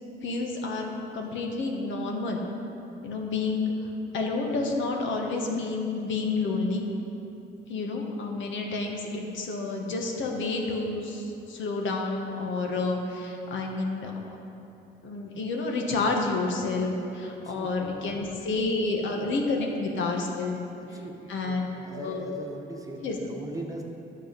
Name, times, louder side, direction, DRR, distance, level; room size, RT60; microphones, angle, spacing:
voice 1, 0.2-2.4 3.0-6.8 7.7-14.1 15.0-20.6 20.9-21.0 21.3-21.7 21.9-22.3 23.0-23.2, left 3 dB, 75° left, 1 dB, 1.3 m, -29 dB
voice 2, 20.9-23.8, right 2 dB, 15° right, 1 dB, 1.2 m, -40 dB
10.0 x 7.3 x 5.3 m, 2.9 s
cardioid pair, 90°, 20 cm